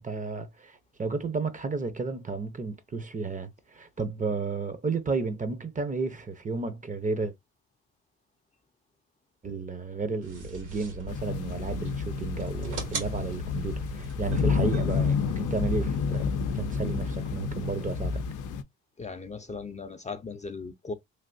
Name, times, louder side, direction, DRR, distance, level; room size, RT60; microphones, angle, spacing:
voice 1, 0.0-7.3 9.4-16.3 16.5-18.2, right 4 dB, 25° right, 0.6 m, -32 dB
sound 1, 10.2-17.2, right 1 dB, 80° right, 2.1 m, -41 dB
sound 2, 11.1-18.6, left 5 dB, 85° left, 0.5 m, -30 dB
voice 2, 19.0-20.9, left 4 dB, 25° left, 0.5 m, -38 dB
3.3 x 2.5 x 2.5 m
cardioid pair, 90°, 30 cm